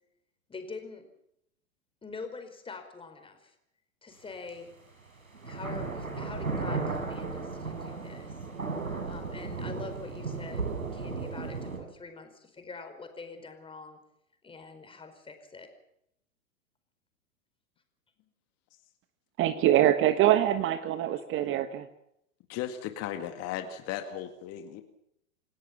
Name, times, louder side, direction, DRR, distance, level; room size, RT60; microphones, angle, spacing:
voice 1, 0.5-1.1 2.0-3.5 4.0-4.7 5.4-8.4 9.1-14.0 14.4-15.7, left 4 dB, 15° left, 6 dB, 4.8 m, -44 dB
sound 1, 4.5-4.6 5.3-11.8, right 4 dB, 90° right, 7.7 m, -35 dB
voice 2, 19.4-21.9, right 12 dB, 30° right, 11 dB, 1.3 m, -24 dB
voice 3, 22.5-24.8, left 10 dB, 35° left, 7 dB, 2.1 m, -36 dB
28.0 x 17.5 x 7.2 m, 0.76 s
hypercardioid pair, 105°, 40 cm